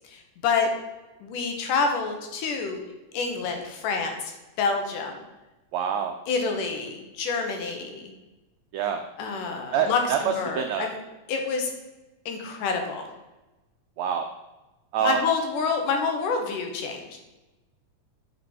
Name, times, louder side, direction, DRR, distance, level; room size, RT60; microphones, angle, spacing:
voice 1, 0.1-0.7 1.2-2.8 3.1-5.2 6.3-8.1 9.2-10.9 11.3-11.7 12.3-13.1 15.0-17.2, left 4 dB, 80° left, 3 dB, 2.7 m, -28 dB
voice 2, 5.7-6.2 8.7-9.0 9.7-10.9 14.0-14.3 14.9-15.2, right 8 dB, 85° right, 5 dB, 1.5 m, -26 dB
10.0 x 5.2 x 4.2 m, 1.1 s
omnidirectional pair, 3.7 m